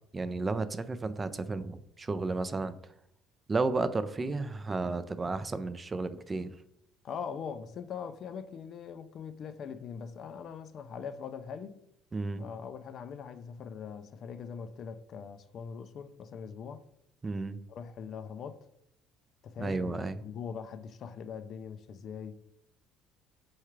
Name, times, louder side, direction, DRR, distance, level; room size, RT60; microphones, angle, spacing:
voice 1, 0.1-2.7 3.5-6.5 12.1-12.4 17.2-17.6 19.6-20.2, right 3 dB, 25° right, 0.3 m, -32 dB
voice 2, 7.0-11.8 12.4-16.8 17.7-18.7 19.4-22.4, left 6 dB, 55° left, 0.3 m, -42 dB
4.5 x 2.3 x 3.0 m
supercardioid pair, 75°, 0 cm